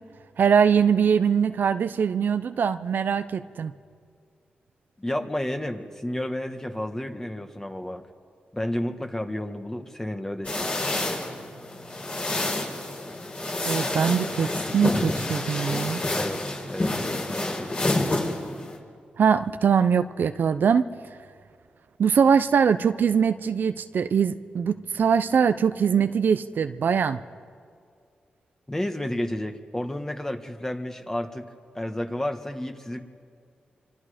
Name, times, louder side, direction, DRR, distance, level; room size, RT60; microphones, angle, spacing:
voice 1, 0.4-3.7 13.7-16.0 19.2-20.8 22.0-27.2, right 7 dB, 70° right, 10 dB, 0.6 m, -22 dB
voice 2, 5.0-8.1 8.5-10.7 16.1-16.9 17.3-18.0 28.7-31.5 31.7-33.0, left 1 dB, 15° left, 6 dB, 1.6 m, -31 dB
sound 1, 10.4-18.8, left 2 dB, 45° left, 5.0 m, -28 dB
26.0 x 24.5 x 5.1 m, 2.2 s
cardioid pair, 60°, 3 cm